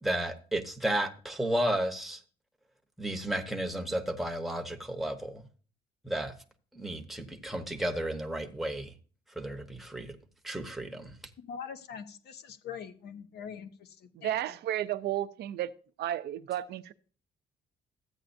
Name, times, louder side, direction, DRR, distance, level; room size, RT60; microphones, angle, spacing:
voice 1, 0.0-2.2 3.0-5.4 6.0-6.3 6.7-8.9 9.4-10.2 10.4-11.2, right 1 dB, ahead, 0.9 m, -33 dB
voice 2, 11.4-14.3, left 7 dB, 65° left, 1.1 m, -43 dB
voice 3, 14.1-15.7 16.0-16.9, right 12 dB, 65° right, 0.5 m, -32 dB
14.0 x 9.0 x 2.6 m
cardioid pair, 160°, 18 cm